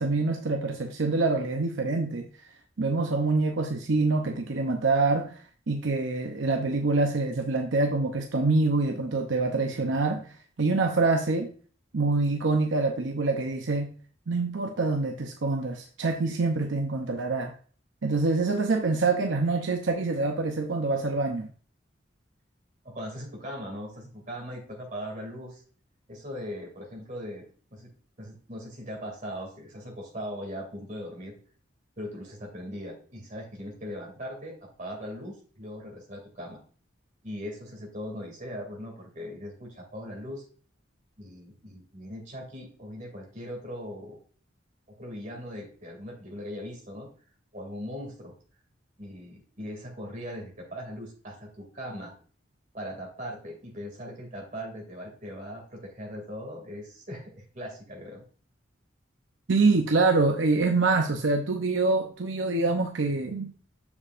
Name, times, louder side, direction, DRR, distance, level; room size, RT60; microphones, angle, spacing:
voice 1, 0.0-2.3 2.8-5.4 5.7-10.3 10.6-11.5 11.9-13.9 14.3-17.5 18.0-21.5 59.5-63.5, right 3 dB, 80° right, 3 dB, 0.7 m, -25 dB
voice 2, 22.8-25.6 26.1-27.4 27.7-27.9 28.2-31.3 32.0-36.6 37.2-40.4 41.2-44.2 44.9-47.1 47.5-48.3 49.0-52.1 52.7-58.2, equal, 40° right, 0 dB, 2.5 m, -39 dB
7.1 x 6.8 x 2.5 m, 0.42 s
head